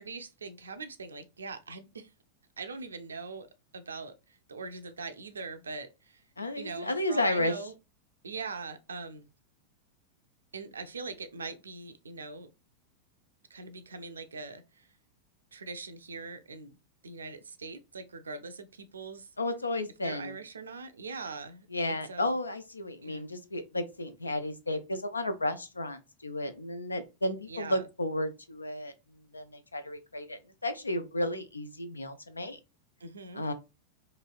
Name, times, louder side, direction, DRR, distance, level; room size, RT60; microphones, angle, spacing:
voice 1, 0.0-2.1 2.6-3.5 3.7-6.2 6.6-7.7 8.2-9.3 10.5-12.5 13.5-14.9 15.5-16.8 17.0-19.3 20.0-22.3 23.0-23.3 27.5-27.9 33.0-33.4, right 4 dB, 70° right, 0.4 m, -42 dB
voice 2, 6.4-7.5 19.4-20.3 21.7-28.9 29.3-32.6 33.3-33.5, left 1 dB, 80° left, 0.4 m, -33 dB
3.0 x 2.7 x 2.3 m
figure-of-eight pair, 90°, 0 cm